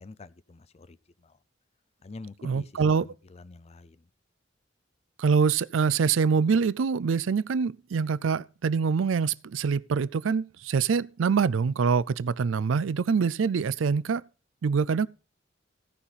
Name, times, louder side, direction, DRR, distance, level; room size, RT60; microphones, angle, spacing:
voice 1, 0.0-1.4 2.0-4.0, left 3 dB, 35° left, 0.5 m, -46 dB
voice 2, 2.4-3.1 5.2-14.2 14.6-15.1, right 5 dB, 90° right, 0.4 m, -25 dB
17.0 x 5.7 x 4.1 m
head